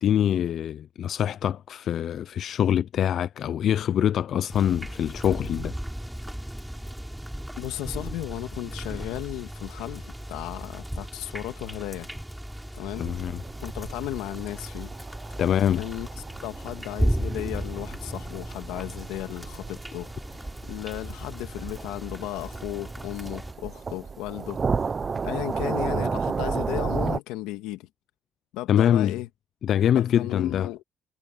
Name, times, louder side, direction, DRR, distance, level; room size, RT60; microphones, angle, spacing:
voice 1, 0.0-5.8 13.0-13.4 15.4-15.8 28.7-29.1 29.6-30.7, left 10 dB, 60° left, 0.6 m, -24 dB
sound 1, 4.5-23.5, equal, 5° right, 6.7 m, -35 dB
voice 2, 7.6-12.1 12.7-13.1 13.6-14.9 15.8-16.1 16.4-20.1 20.7-24.6 25.2-27.9 28.5-29.3 30.0-30.8, left 16 dB, 85° left, 1.9 m, -35 dB
sound 2, 13.0-27.2, right 5 dB, 35° right, 0.8 m, -33 dB
supercardioid pair, 80°, 0 cm